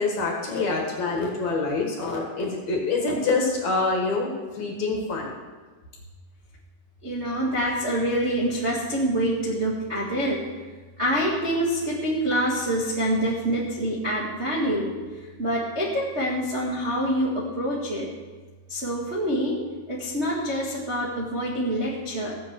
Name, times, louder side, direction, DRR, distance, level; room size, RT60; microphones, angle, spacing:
voice 1, 0.0-5.4, left 3 dB, 55° left, 0 dB, 2.5 m, -26 dB
voice 2, 7.0-10.4 11.0-14.9 15.4-18.1 18.7-19.6 19.9-22.4, equal, 35° right, -5 dB, 1.0 m, -26 dB
16.0 x 7.8 x 6.4 m, 1.3 s
omnidirectional pair, 4.8 m